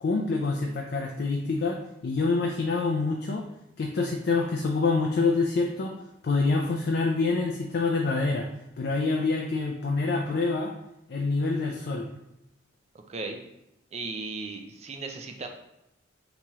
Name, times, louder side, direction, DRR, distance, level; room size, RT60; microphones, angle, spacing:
voice 1, 0.0-1.8 2.0-3.5 3.8-5.9 6.2-8.5 8.8-10.7 11.1-12.1, left 3 dB, 55° left, 1 dB, 0.4 m, -26 dB
voice 2, 13.1-13.4 13.9-15.5, right 3 dB, 35° right, 4 dB, 0.4 m, -36 dB
3.0 x 2.9 x 3.5 m, 0.84 s
head